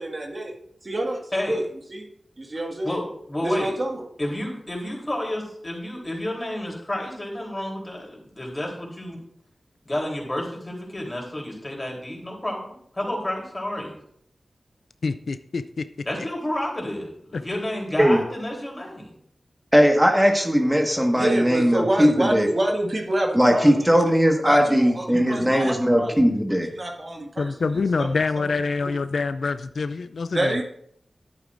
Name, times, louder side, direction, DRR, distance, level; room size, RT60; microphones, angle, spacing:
voice 1, 0.0-0.5 0.9-1.6 1.9-2.1 2.4-3.0 3.4-4.1 21.2-24.2 24.4-26.3 26.7-27.5 28.0-28.1 28.4-28.5 28.8-28.9 30.3-30.6, right 1 dB, 50° right, 1 dB, 1.8 m, -27 dB
voice 2, 2.8-3.7 4.2-9.2 9.9-14.0 16.1-19.2, left 1 dB, 30° left, -1 dB, 3.4 m, -30 dB
voice 3, 15.0-15.8 17.3-17.6 27.4-30.6, left 4 dB, 80° left, 12 dB, 0.4 m, -26 dB
voice 4, 19.7-22.5 23.3-26.7, equal, 10° right, 3 dB, 1.5 m, -19 dB
11.0 x 8.4 x 2.6 m, 0.67 s
cardioid pair, 40°, 0 cm